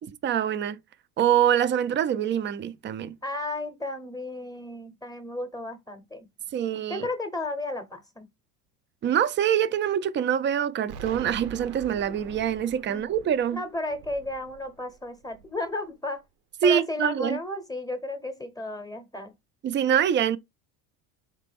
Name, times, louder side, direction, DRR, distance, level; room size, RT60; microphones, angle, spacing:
voice 1, 0.0-0.8 1.2-3.1 6.5-7.1 9.0-13.6 16.6-17.4 19.6-20.4, right 9 dB, 25° right, 0.4 m, -25 dB
voice 2, 3.2-6.3 6.9-8.3 12.9-13.1 13.5-16.2 16.6-19.3, left 2 dB, 10° left, 0.8 m, -33 dB
Explosion, 10.9-15.7, right 8 dB, 75° right, 0.9 m, -44 dB
4.2 x 3.3 x 3.4 m
supercardioid pair, 95°, 44 cm